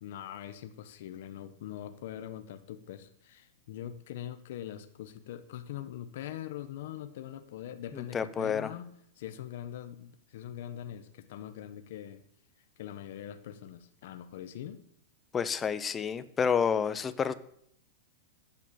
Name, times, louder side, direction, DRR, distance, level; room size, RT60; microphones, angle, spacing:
voice 1, 0.0-8.9 9.2-12.2 12.8-14.8, left 11 dB, 55° left, 9 dB, 1.1 m, -42 dB
voice 2, 7.9-8.7 15.3-17.3, left 6 dB, 15° left, 14 dB, 0.7 m, -29 dB
12.0 x 9.4 x 7.1 m, 0.71 s
supercardioid pair, 160°, 0 cm